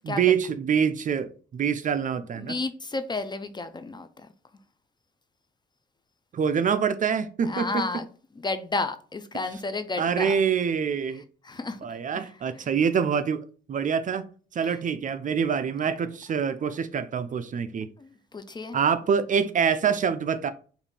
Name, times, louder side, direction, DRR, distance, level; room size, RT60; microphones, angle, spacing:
voice 1, 0.0-2.5 6.3-8.0 10.0-11.2 11.8-14.3 14.5-17.9 18.7-20.5, right 7 dB, 40° right, 0.4 m, -25 dB
voice 2, 2.4-4.1 7.4-8.1 8.4-10.4 11.4-11.8 12.1-12.3 14.6-14.7 18.0-18.8, left 3 dB, 20° left, 0.4 m, -32 dB
5.2 x 2.5 x 3.2 m
cardioid pair, 90°, 20 cm